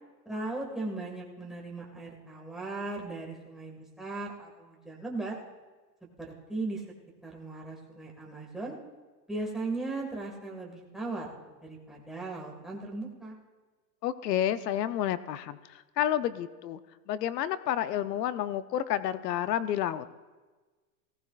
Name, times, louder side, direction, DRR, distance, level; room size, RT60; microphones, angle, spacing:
voice 1, 0.3-5.4 6.0-6.8 7.2-8.8 9.3-11.3 11.6-13.4, right 2 dB, ahead, -3 dB, 1.9 m, -37 dB
voice 2, 14.0-16.8 17.1-20.1, left 11 dB, 85° left, 13 dB, 0.8 m, -30 dB
18.5 x 15.5 x 2.5 m, 1.3 s
supercardioid pair, 140°, 48 cm